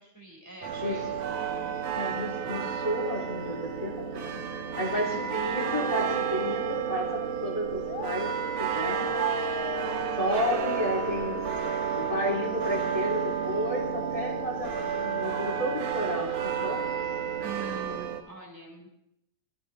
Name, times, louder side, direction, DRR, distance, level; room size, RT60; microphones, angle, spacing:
voice 1, 0.0-1.7 4.8-5.2 17.4-18.9, right 4 dB, 5° right, -1 dB, 3.2 m, -44 dB
sound 1, 0.6-18.2, right 8 dB, 90° right, 1.4 m, -31 dB
sound 2, 0.7-17.9, right 2 dB, 50° right, 1.5 m, -44 dB
voice 2, 1.9-9.1 10.2-11.5 11.9-16.9, equal, 10° left, -1 dB, 2.1 m, -32 dB
sound 3, 5.3-8.1 9.1-12.1, left 8 dB, 70° left, 2.3 m, -43 dB
18.0 x 13.5 x 4.0 m, 0.76 s
omnidirectional pair, 4.6 m